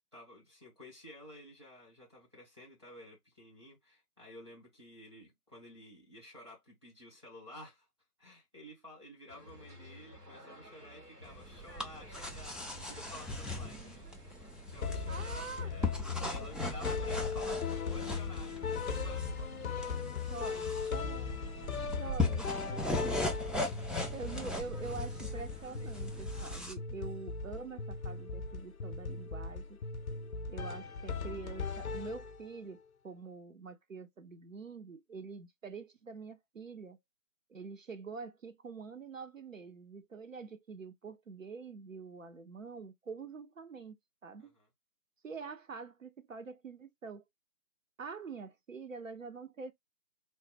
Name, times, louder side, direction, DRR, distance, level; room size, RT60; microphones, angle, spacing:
voice 1, 0.1-7.9 8.2-21.0 21.7-21.9 23.6-23.9 44.4-44.7, left 1 dB, 20° right, 0.7 m, -53 dB
sound 1, 9.3-26.6, left 1 dB, 85° right, 1.8 m, -56 dB
sound 2, 11.2-26.7, left 2 dB, ahead, 0.3 m, -39 dB
voice 2, 13.6-14.0 15.1-15.7 20.3-21.4 21.9-23.0 23.9-29.8 30.5-37.0 37.5-44.0 44.2-44.5 45.2-47.2 48.0-49.7, right 4 dB, 60° right, 0.5 m, -46 dB
sound 3, 14.8-32.6, left 5 dB, 65° left, 0.6 m, -38 dB
3.1 x 2.1 x 2.8 m
figure-of-eight pair, 150°, 46 cm